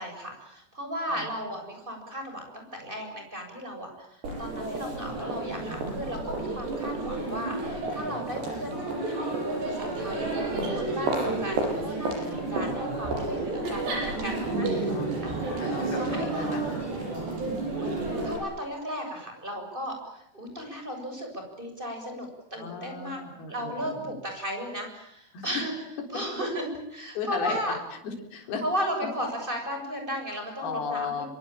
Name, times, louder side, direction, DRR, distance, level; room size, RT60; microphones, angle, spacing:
voice 1, 0.0-4.1 4.4-14.9 15.2-15.6 16.0-16.3 17.8-23.2 23.5-25.7 26.1-27.8 28.6-31.3, equal, 10° right, 3 dB, 7.1 m, -35 dB
Crowd, 4.2-18.4, right 2 dB, 65° right, 9.3 m, -31 dB
voice 2, 8.0-8.9 10.5-10.9 12.2-12.5 14.4-14.6 14.9-15.1 15.6-16.6 16.9-17.1 22.6-24.1 25.3-25.6 27.2-27.6 28.0-28.6 29.0-29.1 30.6-31.3, left 5 dB, 55° left, 3 dB, 5.7 m, -36 dB
26.5 x 23.0 x 8.9 m, 0.81 s
omnidirectional pair, 5.3 m